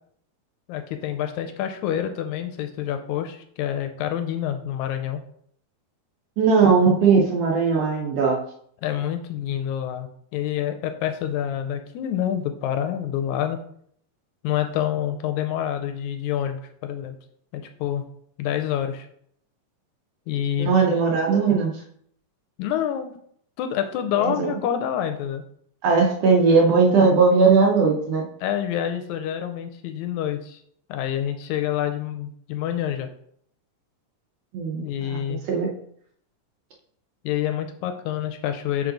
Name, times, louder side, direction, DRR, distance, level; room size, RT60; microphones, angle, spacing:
voice 1, 0.7-5.2 8.8-13.6 14.4-17.2 17.5-18.0 18.4-19.1 20.3-20.7 22.6-23.2 23.6-25.4 28.4-30.6 30.9-33.1 34.8-35.4 37.2-38.9, left 10 dB, 80° left, 7 dB, 1.7 m, -27 dB
voice 2, 6.4-8.4 20.6-21.7 24.2-24.5 25.8-28.3 34.5-35.7, right 4 dB, 70° right, 0 dB, 1.5 m, -19 dB
5.4 x 4.7 x 3.8 m, 0.66 s
omnidirectional pair, 3.7 m